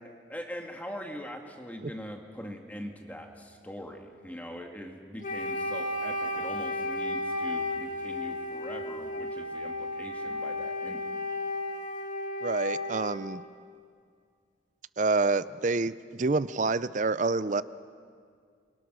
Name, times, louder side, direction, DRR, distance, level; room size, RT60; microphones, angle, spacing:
voice 1, 0.3-11.1, equal, 10° left, 2 dB, 1.9 m, -42 dB
Wind instrument woodwind instrument, 5.2-13.2, left 1 dB, 45° left, 2.0 m, -33 dB
voice 2, 12.4-13.4 15.0-17.6, right 3 dB, 40° right, 16 dB, 0.5 m, -27 dB
29.0 x 23.0 x 6.2 m, 2.2 s
head